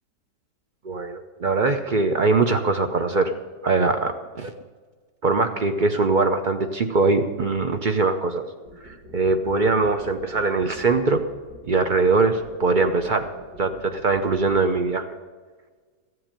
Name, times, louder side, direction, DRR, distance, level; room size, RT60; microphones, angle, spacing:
voice 1, 0.8-3.4 3.6-4.5 5.2-8.4 8.8-11.2 11.6-13.3 13.6-15.1, right 3 dB, 55° right, 7 dB, 0.5 m, -22 dB
sound 1, 8.6-14.6, right 1 dB, 85° right, 3.2 m, -45 dB
14.5 x 7.8 x 8.9 m, 1.5 s
omnidirectional pair, 1.9 m